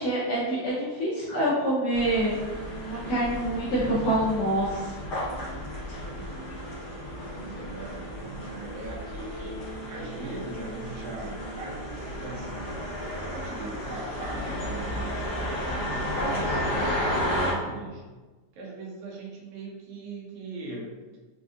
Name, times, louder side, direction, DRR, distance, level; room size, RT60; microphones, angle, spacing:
voice 1, 0.0-2.4 2.9-5.0 5.9-6.0, right 1 dB, 80° left, -8 dB, 1.5 m, -26 dB
sound 1, 1.9-17.5, left 1 dB, 60° left, 1.0 m, -33 dB
sound 2, 2.4-15.2, right 3 dB, 60° right, 1.9 m, -44 dB
voice 2, 6.0-6.4 7.3-12.8 13.4-18.0 18.5-21.0, right 3 dB, 80° right, -2 dB, 1.9 m, -40 dB
5.1 x 2.4 x 2.4 m, 1.3 s
omnidirectional pair, 3.5 m